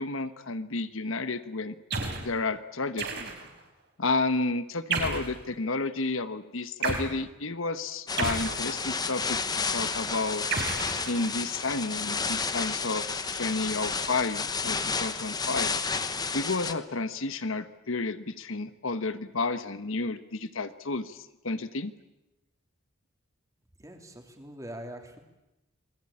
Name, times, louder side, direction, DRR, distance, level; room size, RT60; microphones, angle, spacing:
voice 1, 0.0-1.7 2.2-3.1 4.0-10.4 11.1-15.7 16.3-21.9, left 3 dB, 75° left, 11 dB, 1.2 m, -31 dB
sound 1, 1.9-2.3 3.0-3.6 4.9-5.4 6.8-7.1 8.2-9.1 10.5-11.6, right 4 dB, 55° right, 4.3 m, -32 dB
sound 2, 8.1-16.7, left 5 dB, 20° left, 1.1 m, -31 dB
voice 2, 23.8-25.2, right 1 dB, 15° right, 4 dB, 3.2 m, -43 dB
28.0 x 21.0 x 8.8 m, 0.96 s
head